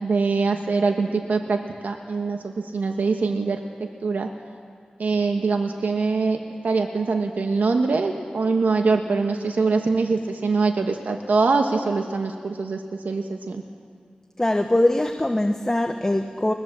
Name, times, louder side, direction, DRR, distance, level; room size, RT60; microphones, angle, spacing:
voice 1, 0.0-4.3 5.0-13.6, right 4 dB, 90° right, 4 dB, 1.2 m, -23 dB
voice 2, 14.4-16.5, left 1 dB, 20° left, 5 dB, 1.2 m, -22 dB
21.0 x 19.5 x 7.4 m, 2.2 s
wide cardioid pair, 55°, 3 cm